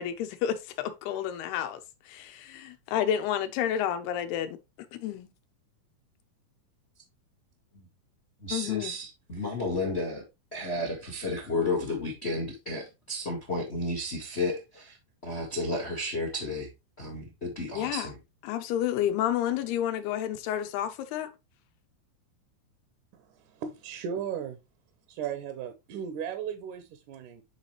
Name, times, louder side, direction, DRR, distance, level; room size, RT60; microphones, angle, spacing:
voice 1, 0.0-4.6 4.9-5.3 8.5-8.9 17.7-18.1 18.4-21.3, left 10 dB, 90° left, 2.9 m, -30 dB
voice 2, 8.4-10.2 10.5-15.0 15.2-16.7 17.0-18.1, left 2 dB, 60° left, 0.6 m, -32 dB
voice 3, 23.1-24.6 25.1-27.4, right 8 dB, 70° right, 2.0 m, -36 dB
9.5 x 4.2 x 3.1 m
omnidirectional pair, 4.5 m